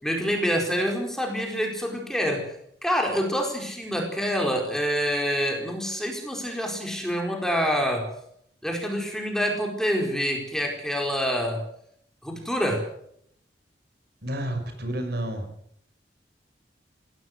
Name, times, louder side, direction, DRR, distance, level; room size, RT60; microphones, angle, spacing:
voice 1, 0.0-2.6 2.8-8.1 8.6-11.6 12.2-12.8, equal, 5° left, 1 dB, 4.7 m, -26 dB
voice 2, 14.2-15.5, right 1 dB, 60° right, 6 dB, 6.0 m, -30 dB
22.0 x 17.0 x 7.9 m, 0.69 s
head